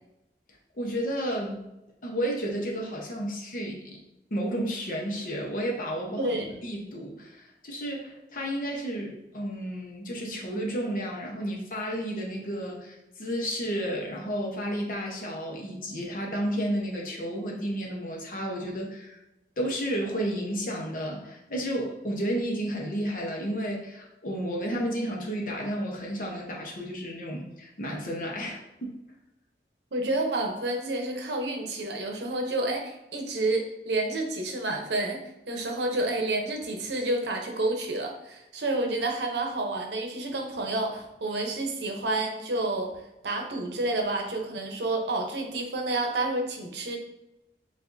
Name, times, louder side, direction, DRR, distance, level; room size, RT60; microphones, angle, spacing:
voice 1, 0.7-1.6 2.0-4.0 4.3-19.2 19.6-28.9, equal, 50° left, -1 dB, 0.9 m, -32 dB
voice 2, 6.1-6.5 29.9-35.2 35.5-42.9 43.2-47.0, right 2 dB, 75° right, 3 dB, 0.8 m, -29 dB
6.9 x 2.5 x 2.6 m, 0.91 s
head